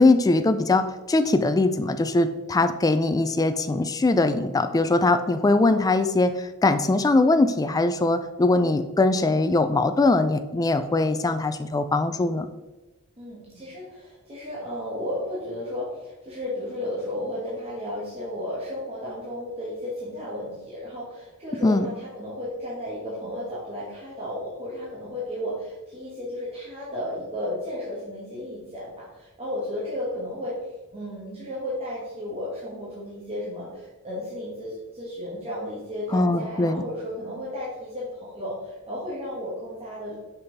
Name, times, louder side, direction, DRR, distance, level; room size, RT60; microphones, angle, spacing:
voice 1, 0.0-12.5 21.6-21.9 36.1-36.8, left 2 dB, 15° left, 9 dB, 0.3 m, -21 dB
voice 2, 13.2-40.2, left 1 dB, 30° right, -8 dB, 1.6 m, -34 dB
5.7 x 5.5 x 4.0 m, 1.1 s
head